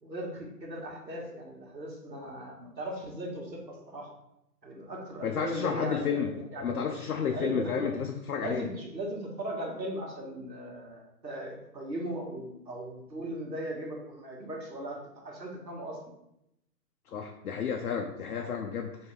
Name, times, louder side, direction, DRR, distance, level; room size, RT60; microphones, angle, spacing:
voice 1, 0.0-4.1 4.6-6.9 7.3-8.1 8.4-16.0 18.4-18.5, right 1 dB, 85° right, -1 dB, 1.4 m, -38 dB
voice 2, 5.2-6.3 6.6-8.7 17.1-19.1, left 7 dB, 65° left, 3 dB, 0.5 m, -31 dB
3.6 x 2.8 x 4.3 m, 0.83 s
figure-of-eight pair, 145°, 49 cm